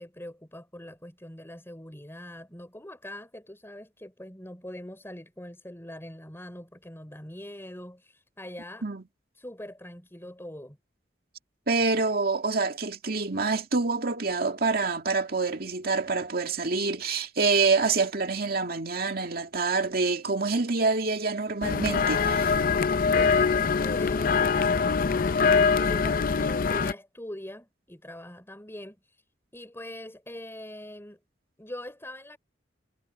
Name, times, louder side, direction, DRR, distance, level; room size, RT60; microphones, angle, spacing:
voice 1, 0.0-8.9 9.4-10.8 23.0-29.2 29.5-31.2 31.6-32.4, left 1 dB, 15° left, 4.9 m, -42 dB
voice 2, 11.7-22.6, right 4 dB, 55° right, 2.3 m, -26 dB
sound 1, 21.6-26.9, left 5 dB, 50° left, 0.5 m, -23 dB
head